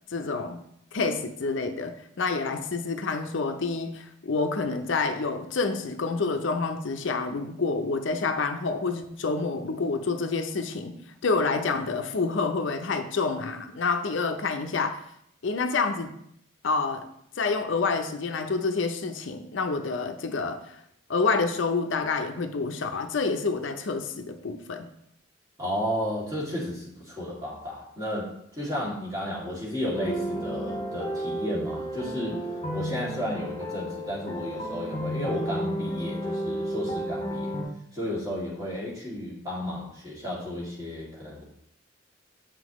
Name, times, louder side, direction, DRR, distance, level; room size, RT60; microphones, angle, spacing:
voice 1, 0.1-0.6 0.9-15.0 15.4-16.2 16.6-17.1 17.4-20.8 21.1-24.9, left 4 dB, 70° left, 0.6 m, -28 dB
voice 2, 25.6-32.4 32.7-37.6 37.9-41.4, left 1 dB, 20° right, 2.3 m, -33 dB
sound 1, 29.9-37.6, equal, 20° left, 1.9 m, -32 dB
8.0 x 5.9 x 3.0 m
head